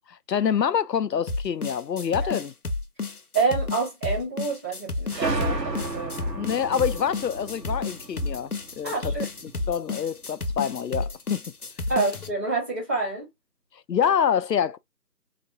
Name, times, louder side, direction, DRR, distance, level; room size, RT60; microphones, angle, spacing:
voice 1, 0.1-2.5 6.3-8.5 8.8-9.1 9.7-11.4 13.9-14.8, left 8 dB, 90° left, 0.6 m, -26 dB
sound 1, 1.3-12.3, left 3 dB, 65° left, 0.9 m, -31 dB
voice 2, 3.3-6.2 8.8-9.3 11.9-13.3, right 4 dB, 10° right, 1.9 m, -27 dB
sound 2, 5.1-9.6, right 2 dB, 85° right, 1.2 m, -33 dB
4.2 x 2.9 x 2.5 m
figure-of-eight pair, 170°, 49 cm